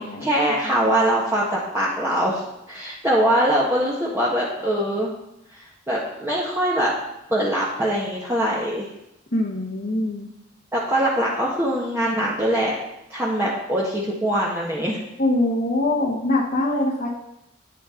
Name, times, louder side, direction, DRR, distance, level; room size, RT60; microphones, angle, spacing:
voice 1, 0.2-2.4 2.7-5.1 5.5-6.9 7.3-8.8 10.7-12.7 13.1-15.0, right 1 dB, 15° right, -6 dB, 1.4 m, -22 dB
voice 2, 9.3-10.3 15.2-17.1, left 1 dB, 50° left, -4 dB, 1.3 m, -23 dB
10.0 x 8.6 x 3.8 m, 0.86 s
head